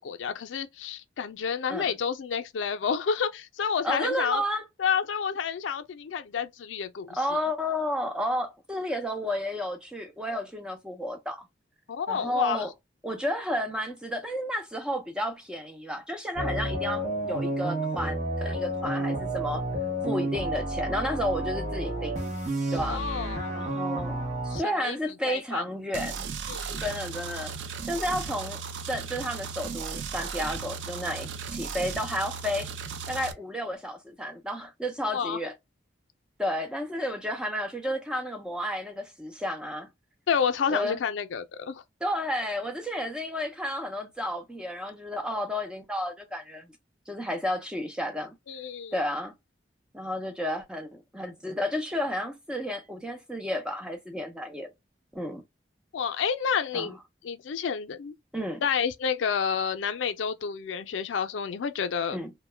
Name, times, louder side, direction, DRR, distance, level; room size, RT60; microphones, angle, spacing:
voice 1, 0.0-4.4 4.8-7.2 11.9-12.7 22.7-23.5 24.5-25.0 25.3-25.6 26.5-26.8 35.1-35.4 40.3-41.8 48.5-49.0 55.9-57.0 57.2-58.1 58.6-62.2, left 6 dB, 90° left, 0.4 m, -29 dB
voice 2, 3.8-4.6 7.2-11.5 12.1-12.7 13.0-19.6 20.0-22.1 22.7-23.1 23.5-26.3 26.8-27.5 27.8-28.6 28.9-32.7 33.1-35.5 36.4-39.9 40.7-41.0 42.0-46.7 47.1-48.3 48.9-49.3 49.9-54.7 55.1-55.4 56.7-57.0 58.3-58.6 62.1-62.3, equal, 5° right, 0.4 m, -32 dB
sound 1, 16.4-24.6, right 1 dB, 40° right, 0.8 m, -30 dB
sound 2, 25.9-33.3, right 6 dB, 80° right, 0.4 m, -36 dB
2.1 x 2.1 x 3.2 m
head